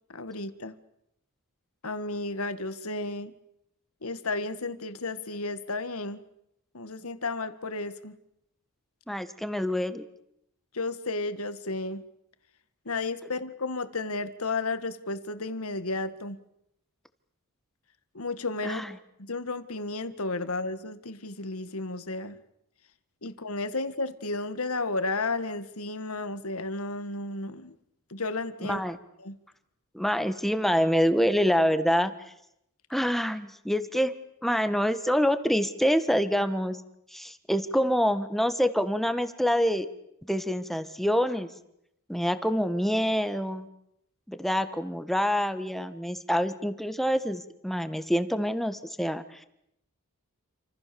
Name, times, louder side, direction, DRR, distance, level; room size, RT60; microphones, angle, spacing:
voice 1, 0.1-0.7 1.8-3.3 4.0-6.2 6.7-8.2 10.7-12.0 12.9-16.4 18.1-22.4 23.2-27.8 28.1-28.8 29.2-29.4, left 3 dB, 70° left, 11 dB, 1.8 m, -33 dB
voice 2, 9.1-10.0 18.6-18.9 28.6-29.0 29.9-32.1 32.9-34.1 34.4-36.8 37.1-39.9 40.3-41.5 42.1-43.7 44.3-49.4, equal, ahead, 10 dB, 1.5 m, -26 dB
28.5 x 26.5 x 7.0 m, 0.80 s
head